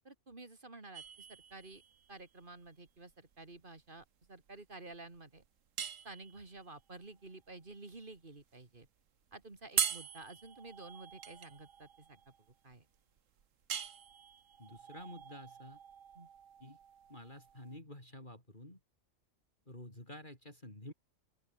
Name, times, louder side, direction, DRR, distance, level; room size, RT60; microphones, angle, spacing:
voice 1, 0.0-1.8 2.1-5.4 6.0-8.9 9.3-12.2 12.6-12.9 16.1-16.3, right 2 dB, 40° right, 2.6 m, -51 dB
sound 1, 0.9-17.8, right 8 dB, 70° right, 1.5 m, -43 dB
voice 2, 14.6-15.8 16.6-16.8 17.1-18.8 19.7-20.9, left 1 dB, 35° left, 6.5 m, -50 dB
open air
omnidirectional pair, 1.4 m